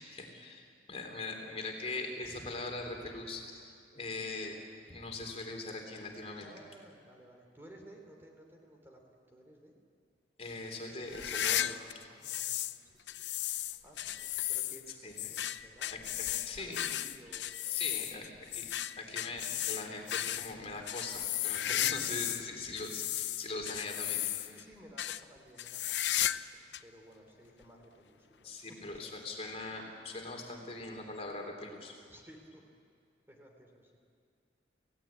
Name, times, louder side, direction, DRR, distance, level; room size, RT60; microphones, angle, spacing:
voice 1, 0.0-4.6 4.9-6.5 10.4-12.0 15.0-15.1 15.9-16.9 17.7-18.3 18.5-18.7 19.0-24.2 28.4-31.9, left 3 dB, 35° left, 2 dB, 3.3 m, -41 dB
voice 2, 6.4-9.7 12.1-13.5 13.8-15.9 16.2-18.2 18.5-18.6 21.7-21.8 24.4-28.5 28.9-29.0 32.1-32.6 33.3-34.0, right 1 dB, 15° right, 1 dB, 3.3 m, -57 dB
sound 1, 11.1-12.8 13.1-22.5 22.8-24.6 25.0-25.2 25.6-26.5 26.7-26.8 27.6-27.7 28.9-29.0, left 12 dB, 80° left, 0.7 m, -35 dB
29.0 x 17.0 x 8.7 m, 2.3 s
head